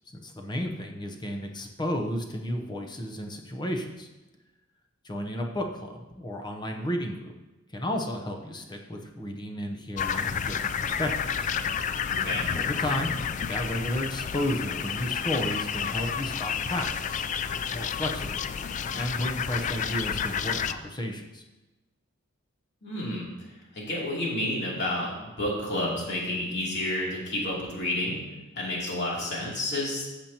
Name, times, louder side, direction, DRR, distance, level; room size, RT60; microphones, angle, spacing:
voice 1, 0.1-4.1 5.0-7.3 7.7-11.1 11.4-11.5 12.5-13.1 13.5-17.2 17.5-18.5 18.9-21.4, left 1 dB, 20° left, 2 dB, 0.8 m, -33 dB
sound 1, 10.0-20.7, left 7 dB, 35° left, 0.3 m, -30 dB
voice 2, 12.1-12.5 22.8-23.3 23.7-28.2 28.6-30.1, left 1 dB, 55° left, -5 dB, 3.0 m, -30 dB
14.5 x 6.9 x 2.9 m, 1.1 s
head